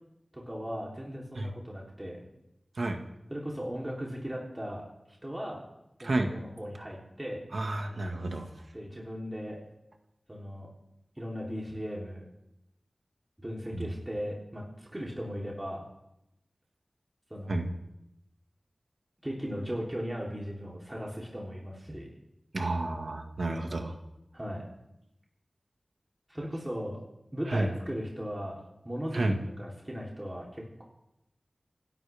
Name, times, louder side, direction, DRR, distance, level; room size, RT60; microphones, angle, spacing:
voice 1, 0.3-2.2 3.3-4.9 5.2-5.6 6.0-7.4 8.7-9.6 10.3-10.7 11.2-12.2 13.4-15.8 17.3-17.6 19.2-22.1 24.3-24.7 26.3-27.0 27.3-30.8, equal, 20° right, -3 dB, 3.5 m, -37 dB
voice 2, 7.5-8.5 13.7-13.9 17.5-17.7 22.5-23.9 27.5-27.7 29.1-29.3, right 2 dB, 75° right, 4 dB, 1.9 m, -30 dB
27.0 x 12.0 x 3.6 m, 0.85 s
wide cardioid pair, 55°, 0 cm